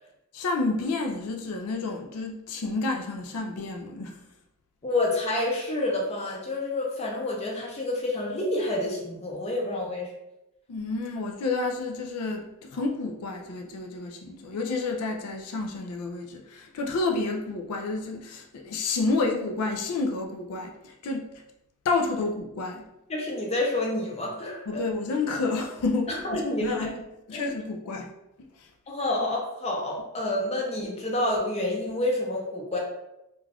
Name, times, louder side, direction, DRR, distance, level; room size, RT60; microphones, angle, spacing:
voice 1, 0.3-4.1 10.7-21.3 21.8-22.9 24.7-26.9 27.3-28.1, left 3 dB, 85° left, 2 dB, 0.4 m, -30 dB
voice 2, 4.8-10.1 23.1-24.8 26.1-27.0 27.3-27.5 28.9-32.8, left 1 dB, 30° left, -1 dB, 0.5 m, -28 dB
2.5 x 2.3 x 3.3 m, 0.89 s
head